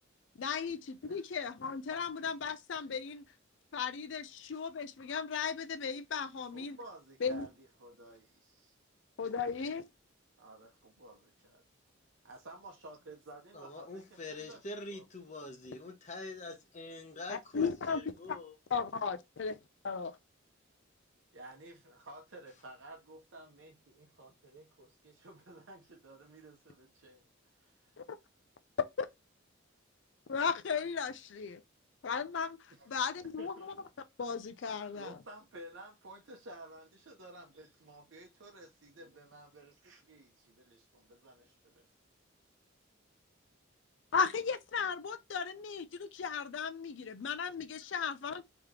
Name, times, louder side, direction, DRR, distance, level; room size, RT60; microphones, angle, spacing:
voice 1, 0.4-3.2 3.7-6.8 7.2-7.5 9.2-9.8 17.3-18.0 18.3-18.4 18.7-19.6 19.8-20.2 29.0-29.1 30.3-31.6 32.0-32.6 32.9-33.7 34.2-35.1 44.1-48.4, left 6 dB, 60° left, 0.4 m, -35 dB
voice 2, 6.4-8.7 9.3-9.7 10.4-11.6 12.2-15.0 21.3-27.2 27.6-27.9 32.7-32.9 33.4-33.7 34.9-41.9, right 2 dB, 65° right, 0.8 m, -53 dB
voice 3, 13.5-18.5, left 2 dB, 35° left, 0.9 m, -45 dB
3.3 x 3.0 x 3.6 m
head